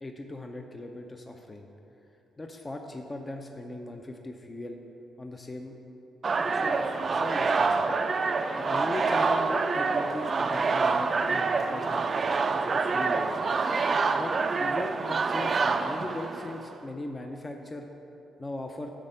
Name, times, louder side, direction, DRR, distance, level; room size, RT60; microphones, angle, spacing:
voice 1, 0.0-1.7 2.4-4.8 5.2-5.8 6.6-7.9 8.6-13.4 14.1-14.3 14.6-17.9 18.4-18.9, left 2 dB, 25° left, 4 dB, 0.5 m, -39 dB
sound 1, 6.2-16.7, right 4 dB, 40° right, 0.4 m, -27 dB
9.8 x 3.5 x 6.5 m, 2.9 s
cardioid pair, 90°, 0 cm